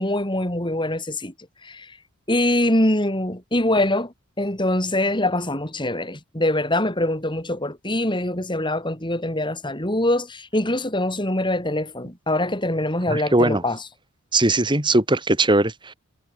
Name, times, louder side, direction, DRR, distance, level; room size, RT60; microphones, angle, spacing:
voice 1, 0.0-1.3 1.6-1.9 2.3-13.8, left 1 dB, 20° left, 6.8 m, -23 dB
voice 2, 13.1-13.6 14.3-15.9, right 2 dB, 20° right, 2.5 m, -19 dB
head